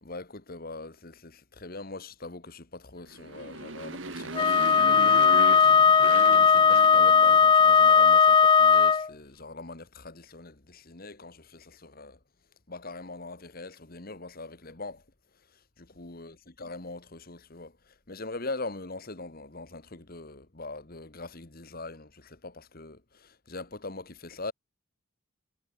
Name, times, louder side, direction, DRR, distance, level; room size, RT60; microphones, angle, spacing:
voice 1, 0.0-12.2 12.7-15.0 15.8-24.5, left 3 dB, 45° left, 1.7 m, -42 dB
Motorcycle, 3.1-7.7, right 3 dB, 65° right, 2.3 m, -37 dB
Wind instrument woodwind instrument, 4.4-9.1, left 6 dB, 25° left, 0.4 m, -18 dB
head